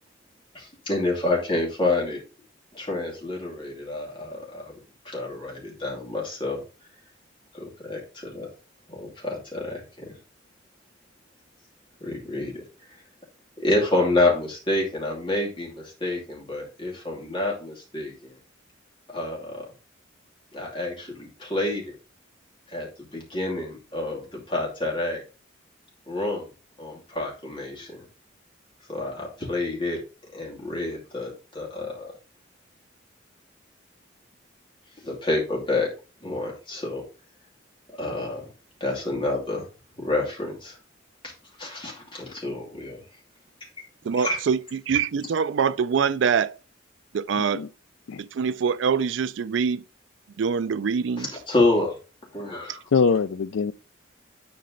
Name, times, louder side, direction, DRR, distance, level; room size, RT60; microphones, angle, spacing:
voice 1, 0.5-2.2 2.7-4.8 5.0-6.6 7.5-8.5 8.9-10.1 12.0-12.6 13.6-18.3 19.1-19.7 20.5-22.0 22.7-25.2 26.1-26.5 26.8-28.0 28.9-30.0 30.3-32.1 35.0-35.9 36.2-37.0 37.9-38.4 38.8-39.7 40.0-40.7 41.2-41.3 41.6-43.0 44.2-44.4 51.2-51.9 52.3-52.8, left 2 dB, 25° left, 2.7 m, -28 dB
voice 2, 44.0-46.5 47.1-47.6 48.2-49.8 50.4-51.3, right 6 dB, 75° right, 0.4 m, -24 dB
voice 3, 47.3-47.7 48.1-48.2 52.9-53.7, left 5 dB, 90° left, 0.4 m, -23 dB
10.5 x 4.3 x 3.8 m
head